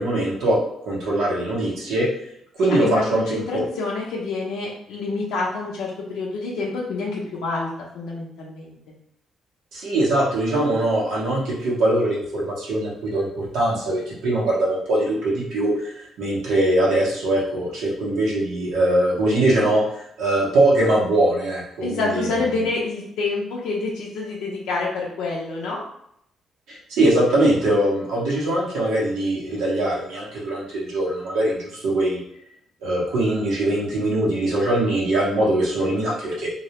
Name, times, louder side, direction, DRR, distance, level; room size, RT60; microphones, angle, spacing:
voice 1, 0.0-2.1 2.6-3.4 9.7-15.9 16.2-22.2 26.7-32.2 32.8-36.5, right 1 dB, 85° right, -5 dB, 0.8 m, -22 dB
voice 2, 2.6-8.8 21.8-25.8, left 3 dB, 90° left, -3 dB, 0.5 m, -27 dB
2.3 x 2.0 x 2.8 m, 0.72 s
cardioid pair, 90°, 0 cm